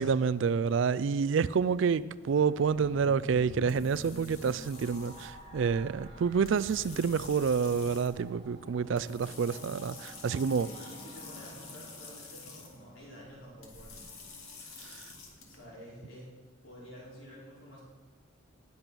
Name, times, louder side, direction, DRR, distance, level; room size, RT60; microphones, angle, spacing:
voice 1, 0.0-10.7 14.9-15.0, right 6 dB, 60° right, 0.3 m, -28 dB
sound 1, 0.7-15.6, left 4 dB, 85° left, 2.4 m, -50 dB
sound 2, 2.5-12.9, equal, 25° right, 3.1 m, -50 dB
voice 2, 10.6-14.2 15.4-16.3 16.6-17.8, equal, 65° left, 4.7 m, -49 dB
19.0 x 6.9 x 6.1 m
head